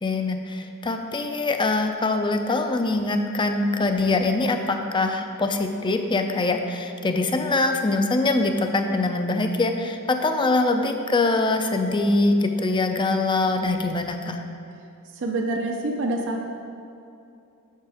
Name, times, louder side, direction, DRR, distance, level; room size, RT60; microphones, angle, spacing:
voice 1, 0.0-14.4, left 2 dB, 20° left, 5 dB, 0.5 m, -23 dB
voice 2, 15.2-16.4, right 2 dB, 55° right, 1 dB, 0.7 m, -26 dB
7.4 x 6.9 x 4.9 m, 2.7 s
head